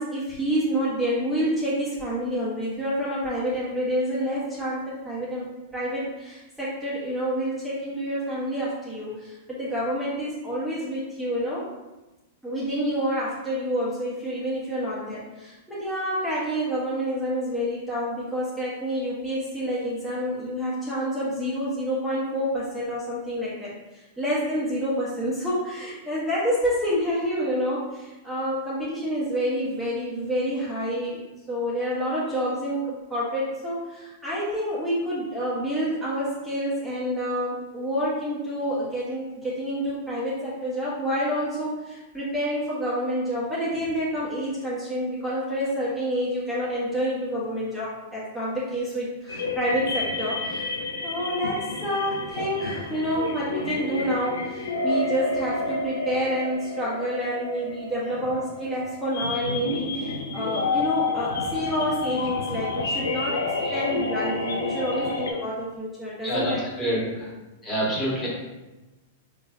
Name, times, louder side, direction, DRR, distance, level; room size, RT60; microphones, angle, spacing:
voice 1, 0.0-5.5 5.7-11.7 12.4-31.2 31.5-50.7 51.0-63.4 63.7-67.1, equal, 5° right, -9 dB, 1.0 m, -28 dB
sound 1, 49.3-65.3, left 3 dB, 85° left, 0.5 m, -30 dB
voice 2, 66.2-67.3 67.6-68.3, equal, 15° left, -5 dB, 1.4 m, -28 dB
3.5 x 3.3 x 2.7 m, 1.1 s
hypercardioid pair, 110°, 0 cm